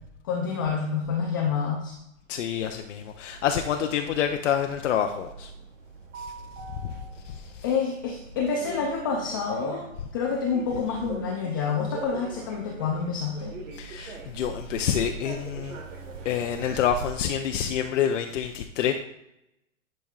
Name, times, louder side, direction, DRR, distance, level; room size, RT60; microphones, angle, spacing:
voice 1, 0.2-2.0 7.6-9.9 10.1-13.5, left 5 dB, 20° left, 0 dB, 0.3 m, -28 dB
voice 2, 2.3-5.5 6.1-6.3 7.2-7.6 13.7-15.8 16.2-18.9, left 9 dB, 65° left, 4 dB, 0.7 m, -27 dB
sound 1, 3.3-17.1, right 4 dB, 70° right, 1.6 m, -42 dB
10.5 x 5.3 x 2.4 m, 0.83 s
hypercardioid pair, 125°, 40 cm